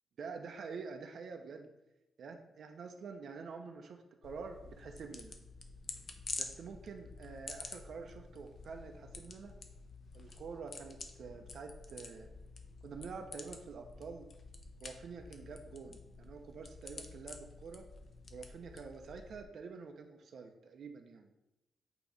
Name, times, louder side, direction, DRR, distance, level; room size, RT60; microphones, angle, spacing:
voice 1, 0.2-1.7 2.2-5.3 6.4-9.5 10.1-12.3 12.8-14.3 14.8-17.9 18.3-21.3, right 5 dB, 50° right, 5 dB, 0.6 m, -47 dB
sound 1, 4.2-19.4, left 4 dB, 35° left, 0.6 m, -49 dB
8.1 x 2.9 x 5.0 m, 0.94 s
wide cardioid pair, 175°, 0 cm